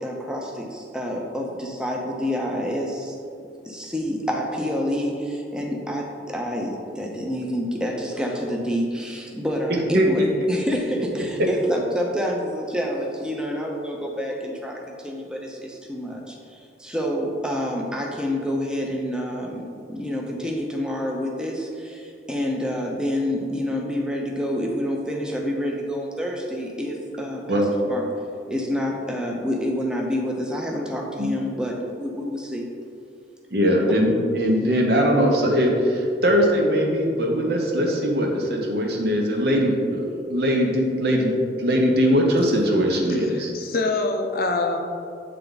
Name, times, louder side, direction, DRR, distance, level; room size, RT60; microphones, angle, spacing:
voice 1, 0.0-3.1 3.6-10.2 10.5-27.6 27.9-28.0 28.5-32.7, equal, 5° right, -1 dB, 0.6 m, -28 dB
voice 2, 9.9-10.5 27.5-27.7 31.2-31.3 33.5-41.3 41.6-43.5, equal, 60° right, 0 dB, 0.9 m, -21 dB
voice 3, 43.1-44.8, left 3 dB, 55° left, 4 dB, 0.5 m, -25 dB
8.4 x 3.4 x 3.9 m, 2.4 s
head